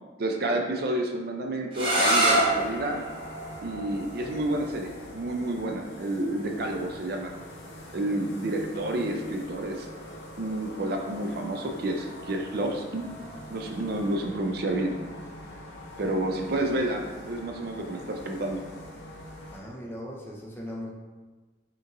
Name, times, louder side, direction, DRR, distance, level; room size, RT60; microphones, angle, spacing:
voice 1, 0.2-3.0 3.6-7.3 7.9-9.9 10.4-13.1 13.5-14.9 16.0-18.6, right 1 dB, 55° right, 2 dB, 0.4 m, -30 dB
sound 1, 1.7-7.4, right 1 dB, 30° right, 0.8 m, -28 dB
sound 2, 2.3-19.6, left 1 dB, 65° left, 0.7 m, -44 dB
voice 2, 19.5-20.9, equal, 10° left, -3 dB, 0.5 m, -38 dB
5.1 x 2.9 x 2.6 m, 1.3 s
head